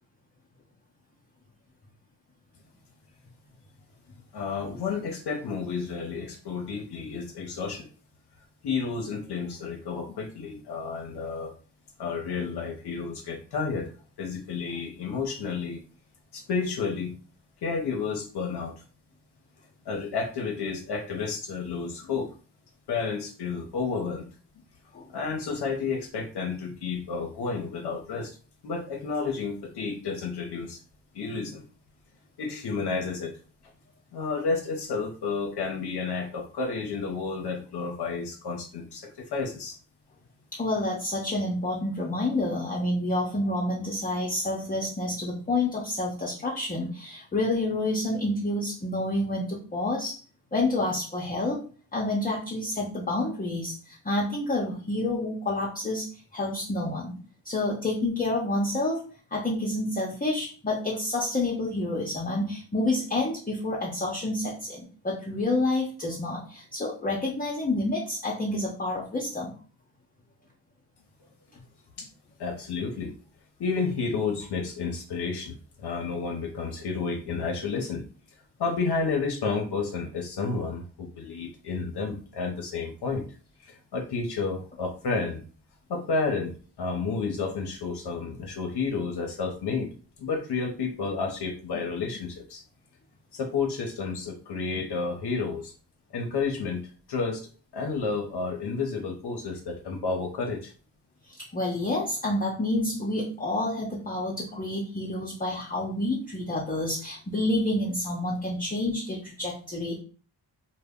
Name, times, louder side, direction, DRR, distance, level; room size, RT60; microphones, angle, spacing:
voice 1, 4.3-7.9 8.6-11.5 12.0-13.9 14.2-15.8 16.3-17.1 17.6-18.8 19.9-22.3 22.9-24.3 25.1-28.4 28.6-30.8 31.1-31.6 32.4-33.3 34.1-39.8 72.0-72.1 72.4-73.1 73.6-78.0 78.6-83.2 83.6-85.4 85.9-89.9 90.2-92.6 93.3-95.7 96.1-100.7, left 4 dB, 60° left, 2 dB, 0.7 m, -31 dB
voice 2, 40.5-50.2 50.5-51.6 51.9-57.2 57.4-59.0 59.3-69.5 101.4-110.0, left 2 dB, 20° left, -4 dB, 0.6 m, -29 dB
2.1 x 2.1 x 3.5 m, 0.38 s
cardioid pair, 65°, 46 cm